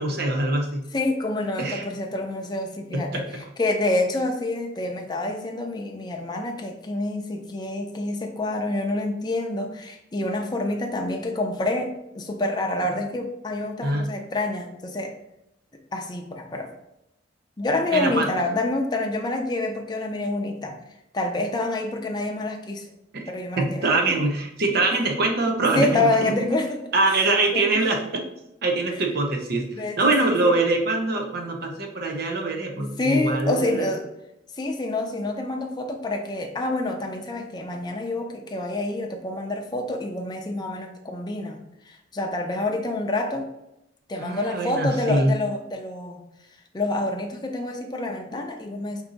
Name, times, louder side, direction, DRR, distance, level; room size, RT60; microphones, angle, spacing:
voice 1, 0.0-0.8 1.6-1.8 2.9-3.2 13.8-14.1 17.9-18.3 23.1-23.2 23.6-26.6 26.9-28.2 28.6-29.6 30.0-33.9 44.2-45.3, right 2 dB, 55° right, 2 dB, 0.8 m, -23 dB
voice 2, 0.9-15.1 15.9-16.7 17.6-20.8 21.1-22.9 23.3-24.2 25.7-26.8 27.1-27.2 27.5-27.8 28.9-29.0 29.7-30.6 32.8-34.1 34.6-41.6 41.9-43.5 44.1-46.2 46.7-49.0, left 2 dB, 20° left, 2 dB, 0.5 m, -27 dB
4.5 x 2.6 x 3.9 m, 0.86 s
head